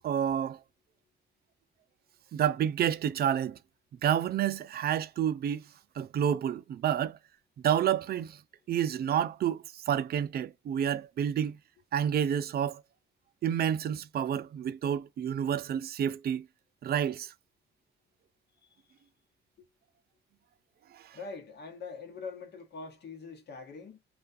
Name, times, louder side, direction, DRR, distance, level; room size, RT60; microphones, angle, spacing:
voice 1, 0.0-0.6 2.3-3.6 4.0-5.6 6.0-7.2 7.6-8.4 8.7-11.6 11.9-12.8 13.4-16.5 16.8-17.3 20.9-21.2, right 9 dB, 50° right, 0.4 m, -29 dB
voice 2, 18.6-18.9 21.1-24.0, left 4 dB, 55° left, 1.1 m, -43 dB
2.4 x 2.3 x 2.4 m
cardioid pair, 90°, 20 cm